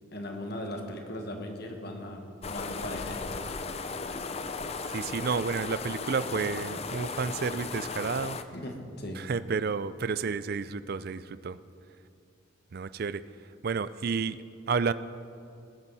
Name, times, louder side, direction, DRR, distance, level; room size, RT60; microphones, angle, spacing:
voice 1, 0.1-3.2 3.5-3.6 8.5-9.2, left 1 dB, 50° left, 3 dB, 1.6 m, -38 dB
sound 1, 2.4-8.4, left 4 dB, 30° left, 0.5 m, -36 dB
voice 2, 4.9-8.4 9.2-11.6 12.7-13.2 13.6-14.4 14.7-14.9, right 5 dB, 50° right, 15 dB, 0.4 m, -31 dB
19.5 x 10.5 x 4.2 m, 2.5 s
head